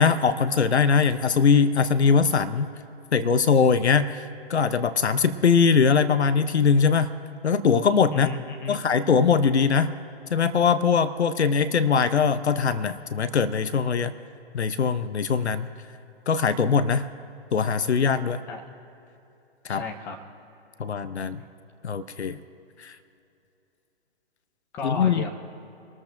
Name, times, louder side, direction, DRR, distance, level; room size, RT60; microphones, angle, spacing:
voice 1, 0.0-2.7 3.1-7.1 7.4-8.3 8.7-9.9 10.3-14.1 14.5-15.7 16.3-17.1 17.5-18.4 19.6-19.8 20.8-21.4 21.8-22.4 22.8-23.0 24.8-25.3, left 6 dB, 90° left, 13 dB, 0.7 m, -21 dB
voice 2, 8.1-8.8 18.5-18.6 19.7-20.2 24.7-25.3, left 4 dB, 5° left, 4 dB, 0.3 m, -33 dB
25.5 x 13.5 x 2.6 m, 2.8 s
hypercardioid pair, 130°, 32 cm